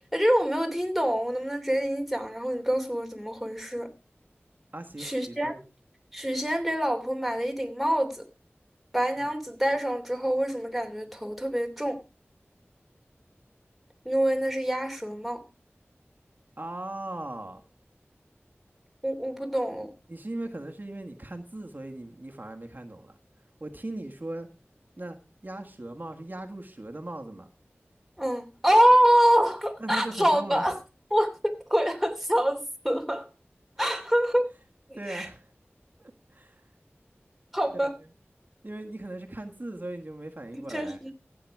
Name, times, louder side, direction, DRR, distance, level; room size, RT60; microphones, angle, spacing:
voice 1, 0.1-3.9 5.0-5.5 6.1-8.2 8.9-12.0 14.0-15.4 19.0-19.9 28.2-30.7 31.1-33.3 33.8-34.5 35.1-35.3 37.5-37.9 40.5-41.1, equal, ahead, 4 dB, 3.0 m, -25 dB
voice 2, 4.7-5.6 9.2-9.3 16.6-17.6 20.1-23.2 23.6-24.5 25.0-25.2 25.4-27.5 29.8-30.7 34.9-35.5 36.0-36.6 38.6-41.0, right 1 dB, 45° right, 5 dB, 1.7 m, -38 dB
15.0 x 8.7 x 4.8 m, 0.30 s
wide cardioid pair, 50°, 4 cm